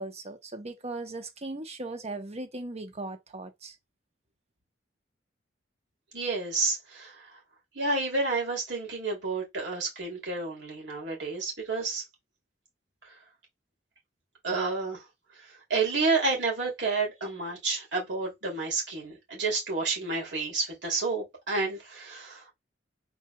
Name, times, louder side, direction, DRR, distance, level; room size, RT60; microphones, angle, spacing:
voice 1, 0.0-3.7, right 2 dB, 35° right, 0.9 m, -38 dB
voice 2, 6.1-7.1 7.7-12.0 14.4-15.0 15.7-22.5, right 3 dB, 70° right, 2.7 m, -30 dB
4.5 x 4.3 x 2.2 m
head